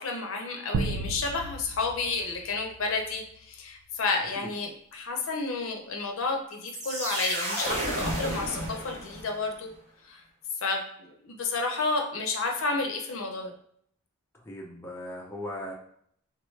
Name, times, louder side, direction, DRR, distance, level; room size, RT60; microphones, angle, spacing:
voice 1, 0.0-9.7 10.0-10.2 10.6-13.5, left 3 dB, 65° left, 2 dB, 0.6 m, -31 dB
sound 1, 0.7-3.3, right 3 dB, 75° right, 0.3 m, -34 dB
sound 2, 6.7-9.5, right 1 dB, 30° right, 0.6 m, -32 dB
voice 2, 14.3-15.7, left 1 dB, 10° left, -3 dB, 0.5 m, -38 dB
3.3 x 2.2 x 3.1 m, 0.67 s
head